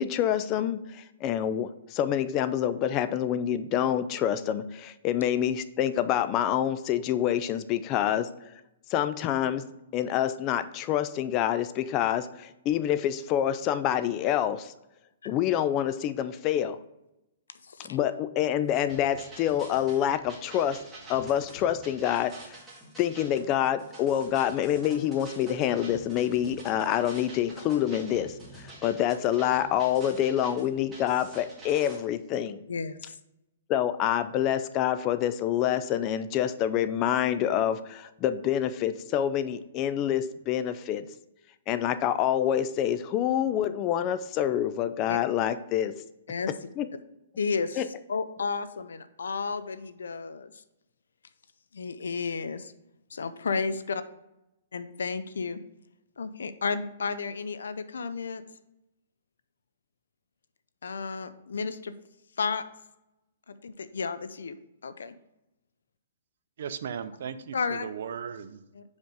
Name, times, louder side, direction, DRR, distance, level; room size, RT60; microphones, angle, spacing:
voice 1, 0.0-8.3 8.9-14.7 15.2-16.8 17.9-20.8 21.1-22.6 23.0-28.4 28.8-32.6 33.7-41.1 41.7-45.9 46.8-46.9 47.8-47.9, left 10 dB, 30° left, 12 dB, 0.4 m, -27 dB
sound 1, 18.7-32.0, right 1 dB, 10° right, 2.1 m, -47 dB
voice 2, 32.7-33.1 45.1-45.2 46.3-46.5 47.4-47.8 48.1-50.5 51.7-52.7 53.1-54.0 54.7-55.6 56.2-58.4 60.8-61.9 62.4-62.6 63.5-64.6 64.8-65.1 67.5-67.9 68.7-68.8, left 5 dB, 85° left, 12 dB, 0.5 m, -32 dB
voice 3, 66.6-68.6, right 7 dB, 65° right, 12 dB, 0.5 m, -36 dB
5.2 x 5.1 x 4.7 m, 0.90 s
hypercardioid pair, 140°, 0 cm